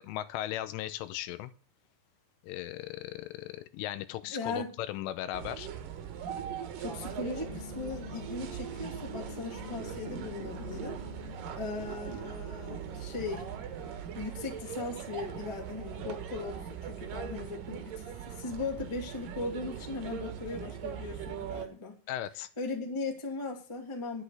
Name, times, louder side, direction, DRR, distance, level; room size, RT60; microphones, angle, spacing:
voice 1, 0.0-1.5 2.4-5.7 22.1-22.5, left 13 dB, 85° left, 13 dB, 3.3 m, -37 dB
voice 2, 4.3-4.7 6.8-11.0 11.5-13.5 14.1-21.9 22.6-24.2, left 3 dB, 10° left, 1 dB, 1.3 m, -38 dB
sound 1, 5.3-21.7, right 9 dB, 65° right, 2.3 m, -40 dB
sound 2, 6.9-19.0 19.3-19.7, left 4 dB, 55° left, 0.8 m, -49 dB
11.0 x 8.2 x 8.0 m, 0.40 s
omnidirectional pair, 5.7 m